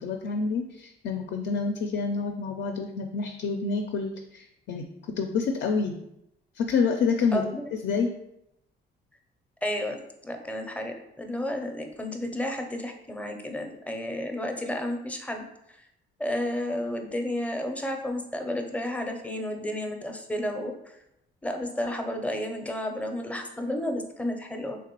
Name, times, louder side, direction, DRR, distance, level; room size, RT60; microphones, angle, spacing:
voice 1, 0.0-4.9 5.2-6.0 6.6-7.4 7.8-8.1, left 5 dB, 65° left, 4 dB, 0.4 m, -28 dB
voice 2, 7.3-7.6 9.6-15.4 16.2-20.7 21.4-24.8, left 1 dB, 5° left, 4 dB, 0.5 m, -32 dB
3.3 x 2.9 x 2.9 m, 0.82 s
cardioid pair, 90°, 20 cm